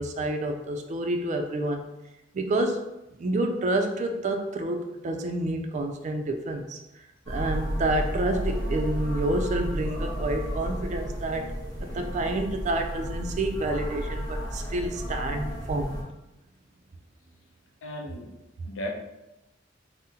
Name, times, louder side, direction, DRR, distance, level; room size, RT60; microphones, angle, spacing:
voice 1, 0.0-1.8 2.3-6.8 7.3-11.5 11.8-16.0, right 1 dB, 40° right, 5 dB, 0.3 m, -29 dB
sound 1, 7.2-16.0, equal, 20° left, 0.9 m, -32 dB
voice 2, 17.8-18.3 18.7-18.9, left 1 dB, 80° left, 1 dB, 0.5 m, -35 dB
3.6 x 2.0 x 2.7 m, 0.93 s
head